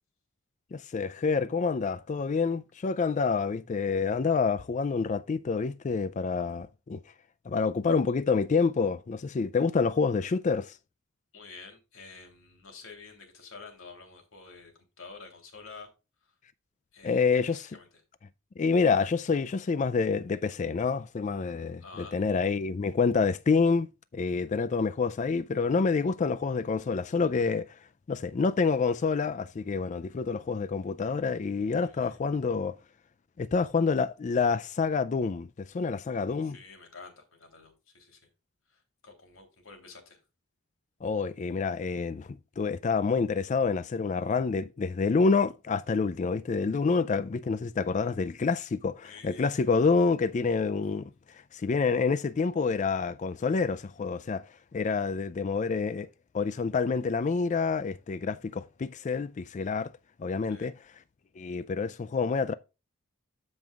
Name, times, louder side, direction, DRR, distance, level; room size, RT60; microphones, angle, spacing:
voice 1, 0.7-7.0 7.5-10.8 17.0-17.6 18.6-23.9 24.1-27.8 28.1-32.8 33.4-36.6 41.0-56.1 56.3-59.9 60.2-60.7 61.4-62.5, left 4 dB, 35° left, 0.3 m, -27 dB
voice 2, 11.3-15.9 16.2-16.3 16.9-17.9 21.8-22.1 31.8-32.2 36.4-38.2 38.7-40.2 49.0-49.6 60.5-60.7, left 4 dB, 70° left, 3.1 m, -49 dB
13.5 x 5.4 x 2.4 m
head